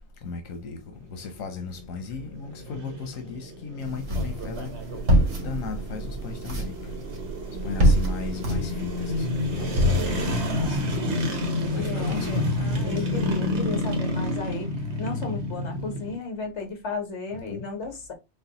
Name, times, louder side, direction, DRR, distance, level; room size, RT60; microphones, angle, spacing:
voice 1, 0.2-0.8 1.1-4.7 5.3-6.7 7.6-11.4 11.7-13.1 17.3-17.7, left 5 dB, 90° left, 1.2 m, -36 dB
sound 1, 0.9-16.2, left 1 dB, 60° right, 1.3 m, -30 dB
sound 2, 3.8-10.8, equal, 80° right, 1.7 m, -26 dB
voice 2, 11.7-14.7 15.0-18.1, left 4 dB, 60° left, 1.5 m, -34 dB
6.5 x 2.3 x 2.9 m
omnidirectional pair, 1.3 m